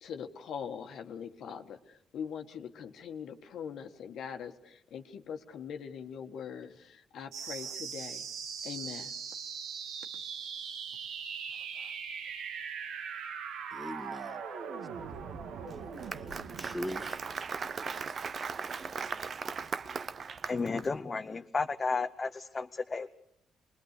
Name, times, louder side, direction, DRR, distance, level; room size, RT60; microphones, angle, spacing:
voice 1, 0.0-8.2 8.6-9.3 10.1-10.2 11.7-11.9, left 7 dB, 75° left, 1.5 m, -42 dB
sound 1, 7.3-18.3, right 6 dB, 80° right, 1.6 m, -41 dB
voice 2, 13.7-14.4 15.7-17.2, equal, 5° right, 2.0 m, -41 dB
Applause, 15.7-20.9, right 5 dB, 45° right, 0.8 m, -38 dB
voice 3, 20.4-23.1, left 4 dB, 30° left, 0.8 m, -33 dB
26.5 x 21.0 x 6.7 m
cardioid pair, 90°, 0 cm